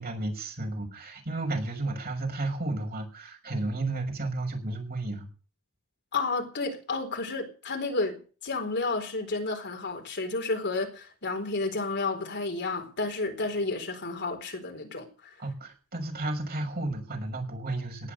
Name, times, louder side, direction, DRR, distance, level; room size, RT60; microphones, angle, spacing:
voice 1, 0.0-5.3 15.4-18.1, right 2 dB, 45° right, 5.9 m, -32 dB
voice 2, 6.1-15.3, left 3 dB, 55° left, 4.2 m, -31 dB
18.5 x 11.0 x 6.7 m
head